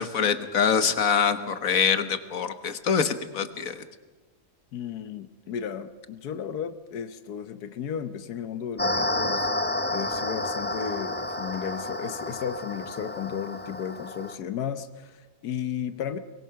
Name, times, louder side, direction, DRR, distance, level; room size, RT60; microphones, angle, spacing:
voice 1, 0.0-3.8, left 6 dB, 65° left, 10 dB, 1.6 m, -24 dB
voice 2, 4.7-9.5 9.9-16.2, left 8 dB, 85° left, 11 dB, 1.5 m, -34 dB
sound 1, 8.8-14.3, left 1 dB, 10° left, 0.5 m, -30 dB
23.0 x 21.5 x 5.8 m, 1.3 s
omnidirectional pair, 1.6 m